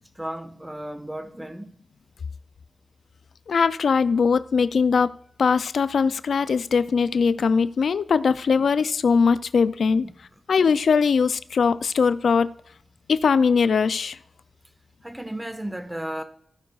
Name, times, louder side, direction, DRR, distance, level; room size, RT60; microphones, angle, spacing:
voice 1, 0.1-1.7 8.6-8.7 10.0-10.1 15.0-16.2, right 1 dB, 15° right, 1.2 m, -34 dB
voice 2, 3.5-5.1 5.4-10.1 10.5-12.5 13.1-14.2, left 5 dB, 90° left, 0.3 m, -21 dB
16.5 x 9.4 x 2.4 m
cardioid pair, 55°, 0 cm